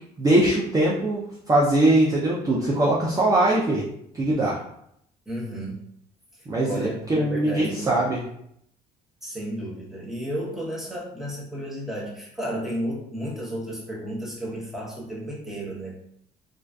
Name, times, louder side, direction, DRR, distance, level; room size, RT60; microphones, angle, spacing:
voice 1, 0.2-3.8 4.2-4.6 6.5-8.2, right 1 dB, 20° right, -4 dB, 0.4 m, -21 dB
voice 2, 5.3-5.8 6.6-8.1 9.2-15.9, right 1 dB, ahead, -5 dB, 0.8 m, -32 dB
2.4 x 2.3 x 2.2 m, 0.73 s
cardioid pair, 110°, 17 cm